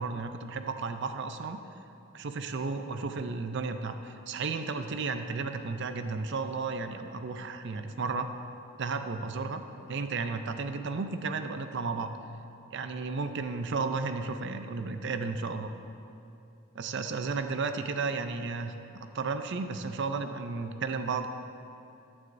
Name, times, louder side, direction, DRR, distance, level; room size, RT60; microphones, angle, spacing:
voice 1, 0.0-1.6 2.2-8.3 8.8-9.6 9.9-12.1 12.7-15.7 16.7-21.3, right 4 dB, 55° right, 8 dB, 0.5 m, -33 dB
14.5 x 9.6 x 2.6 m, 2.7 s
head